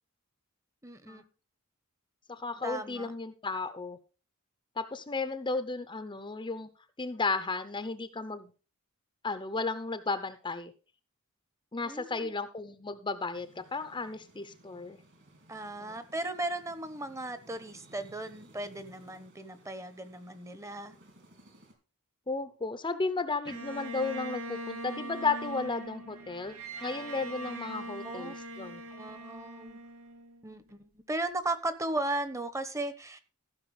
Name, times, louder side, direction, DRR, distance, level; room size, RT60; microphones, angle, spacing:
voice 1, 0.8-1.2 2.6-3.1 11.9-12.3 15.5-20.9 28.0-28.3 28.9-29.8 30.4-33.2, right 2 dB, 15° right, 11 dB, 1.1 m, -36 dB
voice 2, 2.3-4.0 4.8-6.7 7.0-8.5 9.2-10.7 11.7-15.0 15.8-16.0 22.3-26.5 26.8-28.8, left 3 dB, 20° left, 10 dB, 0.8 m, -34 dB
sound 1, 13.3-21.7, right 1 dB, 55° right, 3.4 m, -59 dB
Bowed string instrument, 23.5-30.7, right 1 dB, 90° right, 2.1 m, -41 dB
14.5 x 5.9 x 4.9 m, 0.35 s
head